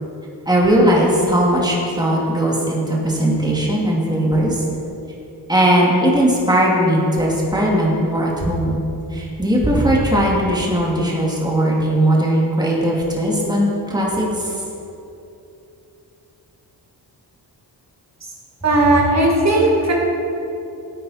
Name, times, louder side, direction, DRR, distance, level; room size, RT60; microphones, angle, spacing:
voice 1, 0.5-4.6 5.5-8.8 9.1-14.5, right 1 dB, 10° right, -4 dB, 2.6 m, -18 dB
voice 2, 18.6-19.9, right 2 dB, 40° right, -3 dB, 2.5 m, -16 dB
14.5 x 8.6 x 4.4 m, 2.9 s
cardioid pair, 85°, 40 cm